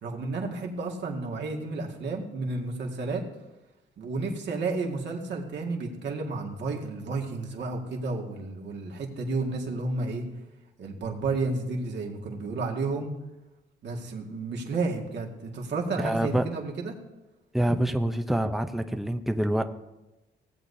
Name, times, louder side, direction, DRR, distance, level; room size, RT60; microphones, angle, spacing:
voice 1, 0.0-3.2 4.0-10.2 10.8-13.1 13.8-16.9, right 3 dB, 60° right, 0 dB, 2.0 m, -31 dB
voice 2, 16.0-16.4 17.5-19.6, right 1 dB, ahead, 7 dB, 0.6 m, -26 dB
17.5 x 8.1 x 2.7 m, 1.0 s
cardioid pair, 90°, 20 cm